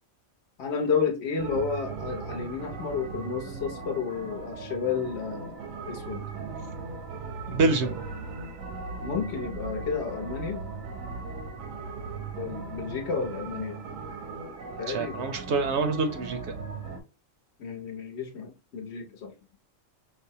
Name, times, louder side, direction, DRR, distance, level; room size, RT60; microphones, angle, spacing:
voice 1, 0.6-5.6 5.9-6.2 7.6-7.7 9.0-10.7 12.4-13.8 14.8-15.3 17.6-19.3, left 5 dB, 60° left, 0.9 m, -31 dB
sound 1, 1.4-17.0, right 4 dB, 85° right, 1.2 m, -38 dB
voice 2, 7.5-7.9 14.9-16.6, right 3 dB, 65° right, 0.8 m, -26 dB
5.3 x 2.1 x 2.7 m
omnidirectional pair, 1.4 m